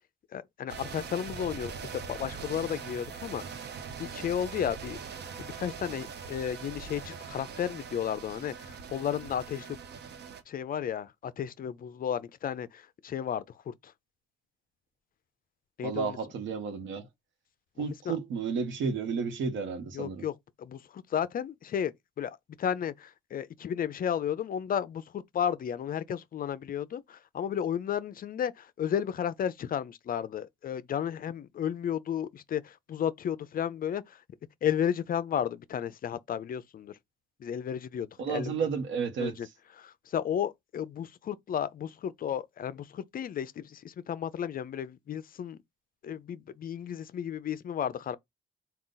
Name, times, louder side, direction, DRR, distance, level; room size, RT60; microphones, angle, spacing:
voice 1, 0.3-3.4 4.0-5.0 5.4-9.8 10.5-13.7 15.8-16.1 17.8-18.1 19.9-20.3 20.6-21.9 22.2-22.3 22.6-34.0 34.6-36.9 37.4-38.5 39.2-39.5 39.8-45.6 46.0-48.2, left 9 dB, 45° left, 0.4 m, -33 dB
sound 1, 0.7-10.4, right 6 dB, 60° right, 0.8 m, -42 dB
voice 2, 15.8-17.1 17.8-20.3 38.2-39.3, right 5 dB, 75° right, 0.9 m, -32 dB
3.8 x 2.3 x 3.8 m
cardioid pair, 90°, 20 cm